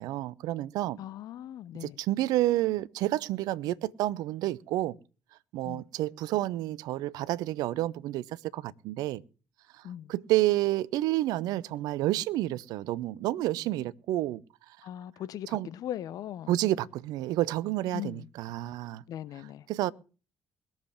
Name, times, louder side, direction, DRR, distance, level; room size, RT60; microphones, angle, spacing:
voice 1, 0.0-1.0 1.8-4.9 5.5-8.2 8.5-9.2 10.1-14.4 15.5-15.7 16.5-19.0 19.7-19.9, right 15 dB, 65° right, 0.7 m, -29 dB
voice 2, 1.0-2.0 5.6-5.9 9.8-10.1 14.8-16.6 17.9-18.3 19.1-19.7, left 11 dB, 60° left, 1.0 m, -39 dB
21.0 x 7.4 x 7.5 m
figure-of-eight pair, 45°, 7 cm